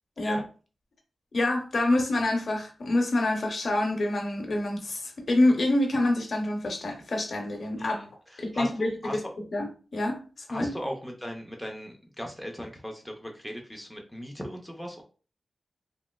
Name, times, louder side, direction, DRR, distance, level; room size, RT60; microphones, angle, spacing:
voice 1, 1.3-8.0 8.4-9.2 9.5-10.2 10.5-10.7, left 1 dB, 55° left, 0.6 m, -26 dB
voice 2, 7.8-9.3 10.5-15.0, equal, ahead, 0.4 m, -37 dB
2.9 x 2.7 x 2.3 m
wide cardioid pair, 150°, 0 cm